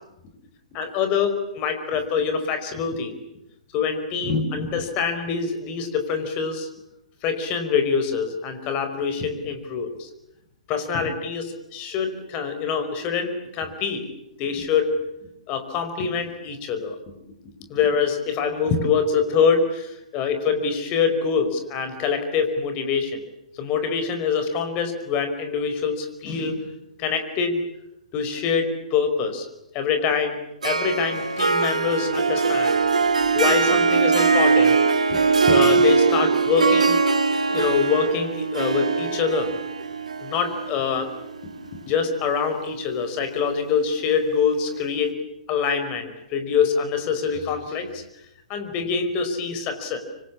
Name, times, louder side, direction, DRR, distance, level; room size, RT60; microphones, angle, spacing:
voice 1, 0.7-3.2 3.7-6.7 7.2-10.1 10.7-14.1 14.4-15.0 15.5-17.0 17.7-23.2 23.6-26.7 27.0-27.6 28.1-29.5 29.7-30.4 30.6-32.8 33.3-34.8 35.1-37.0 37.4-39.5 40.2-41.1 41.9-45.2 45.5-48.0 48.5-50.0, left 6 dB, 30° left, 8 dB, 5.1 m, -25 dB
Harp, 30.6-42.0, right 4 dB, 80° right, 2.2 m, -21 dB
26.5 x 25.0 x 8.7 m, 0.85 s
figure-of-eight pair, 120°, 4 cm